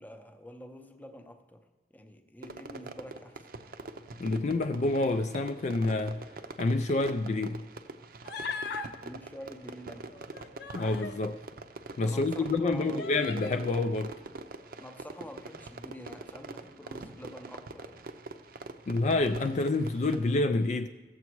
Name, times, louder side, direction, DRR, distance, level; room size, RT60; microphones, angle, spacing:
voice 1, 0.0-1.6 1.9-3.5 9.0-10.2 12.0-13.2 14.8-18.0, equal, 10° left, 0.7 m, -47 dB
Fireworks, 2.4-20.3, right 3 dB, 55° right, 0.6 m, -44 dB
voice 2, 4.2-6.2 6.6-7.6 10.7-11.4 12.0-14.2 18.9-20.9, left 2 dB, 40° left, 0.3 m, -28 dB
Human voice, 8.2-8.9 10.1-11.2 12.0-12.1 12.9-13.6, left 4 dB, 65° left, 0.7 m, -39 dB
16.0 x 7.0 x 4.6 m
head